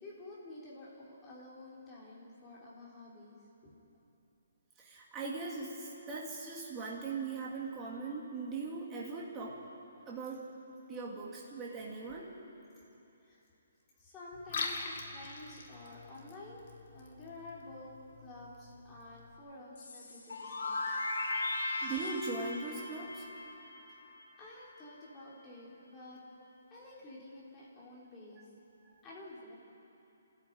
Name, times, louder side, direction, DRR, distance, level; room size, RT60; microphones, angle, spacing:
voice 1, 0.0-3.7 13.2-13.4 14.0-16.6 16.9-17.9 18.2-20.8 23.8-24.1 24.4-26.2 26.7-28.5 29.0-29.5, left 2 dB, 10° left, -7 dB, 3.6 m, -50 dB
voice 2, 4.8-9.6 10.1-10.4 10.9-12.3 21.8-23.3, right 4 dB, 10° right, -4 dB, 2.2 m, -40 dB
Liquid, 14.3-19.3, left 4 dB, 40° left, 2.1 m, -44 dB
sound 1, 19.8-24.5, left 2 dB, 90° left, 5.3 m, -38 dB
29.5 x 13.5 x 9.2 m, 2.8 s
hypercardioid pair, 180°, 0 cm